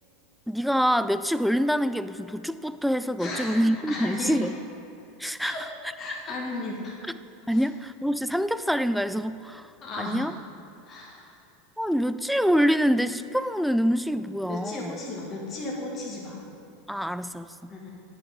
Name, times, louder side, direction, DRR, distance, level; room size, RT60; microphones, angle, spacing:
voice 1, 0.5-4.5 5.2-5.6 7.5-9.7 10.0-10.3 11.8-15.0 16.9-17.7, equal, ahead, 13 dB, 0.3 m, -25 dB
voice 2, 3.2-3.6 3.9-4.5 5.4-7.0 7.5-7.6 9.8-10.4 10.8-11.3 14.5-16.4 17.7-17.9, left 2 dB, 35° left, -3 dB, 1.8 m, -35 dB
9.7 x 5.8 x 5.3 m, 2.8 s
hypercardioid pair, 90°, 0 cm